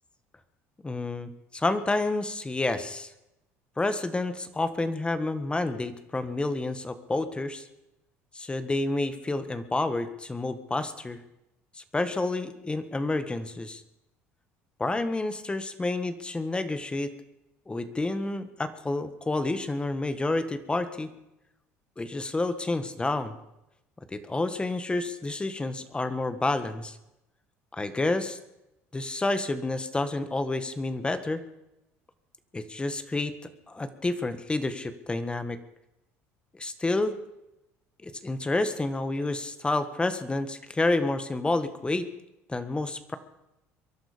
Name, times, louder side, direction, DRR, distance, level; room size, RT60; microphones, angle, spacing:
voice 1, 0.8-3.1 3.8-7.7 8.3-11.2 11.8-13.8 14.8-17.1 17.7-21.1 22.0-23.3 24.1-27.0 27.7-28.4 28.9-31.4 32.5-33.3 33.7-35.6 36.5-37.1 38.0-42.1 42.5-43.2, left 2 dB, 15° left, 11 dB, 1.6 m, -29 dB
23.0 x 11.5 x 5.2 m, 0.90 s
supercardioid pair, 90°, 6 cm